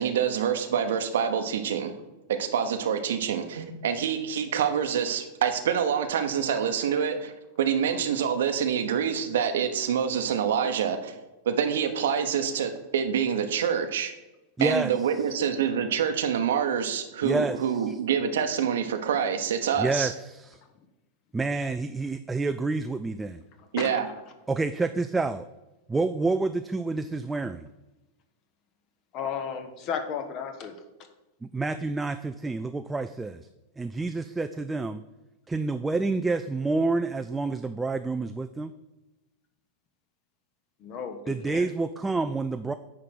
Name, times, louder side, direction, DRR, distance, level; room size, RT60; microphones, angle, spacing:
voice 1, 0.0-1.9 2.4-11.2 11.4-14.1 14.6-20.1 23.7-24.1, right 8 dB, 60° right, 0.9 m, -26 dB
voice 2, 14.6-14.9 17.2-18.0 19.8-20.6 21.3-23.4 24.5-25.5 25.9-27.7 31.4-33.5 33.8-35.0 35.5-38.7 41.3-42.7, right 3 dB, 10° right, 0.3 m, -28 dB
voice 3, 29.1-30.7 40.8-41.6, left 7 dB, 40° left, 1.1 m, -33 dB
9.8 x 3.8 x 6.2 m
figure-of-eight pair, 90°, 0 cm